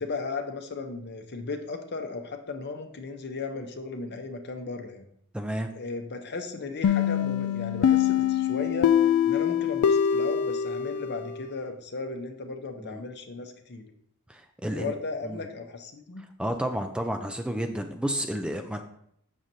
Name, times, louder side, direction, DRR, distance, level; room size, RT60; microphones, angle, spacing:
voice 1, 0.0-5.0 5.7-8.9 9.3-13.9 14.6-16.2, left 4 dB, 50° left, 6 dB, 0.8 m, -36 dB
voice 2, 5.3-5.7 12.8-13.0 14.3-14.9 15.2-15.4 16.4-18.8, right 1 dB, 5° right, 5 dB, 0.4 m, -31 dB
sound 1, 6.8-11.5, left 9 dB, 70° left, 0.3 m, -24 dB
7.4 x 6.4 x 2.8 m, 0.71 s
head